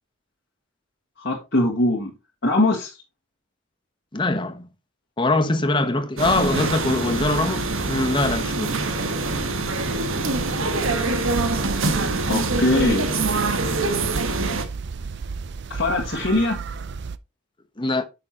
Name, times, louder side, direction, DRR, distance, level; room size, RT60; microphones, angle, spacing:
voice 1, 1.2-2.1 2.4-3.0 12.3-13.1 15.7-16.6, left 2 dB, 50° left, 1.7 m, -21 dB
voice 2, 4.1-4.7 5.2-8.8 17.8-18.0, left 2 dB, 25° left, 0.9 m, -23 dB
sound 1, 6.2-14.7, right 3 dB, 75° right, 1.3 m, -24 dB
sound 2, 11.1-17.2, right 5 dB, 55° right, 0.5 m, -33 dB
9.3 x 6.7 x 2.9 m
head